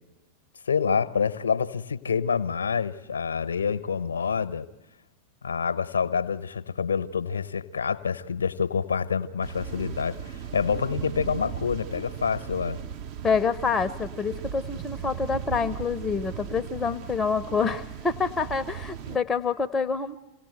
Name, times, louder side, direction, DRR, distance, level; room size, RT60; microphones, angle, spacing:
voice 1, 0.7-4.7 5.4-12.8, left 6 dB, 70° left, 12 dB, 0.9 m, -27 dB
sound 1, 9.4-19.2, right 9 dB, 45° right, 1.0 m, -37 dB
voice 2, 13.2-20.2, left 5 dB, 15° left, 10 dB, 0.8 m, -27 dB
27.0 x 18.0 x 7.9 m, 1.1 s
figure-of-eight pair, 90°, 0 cm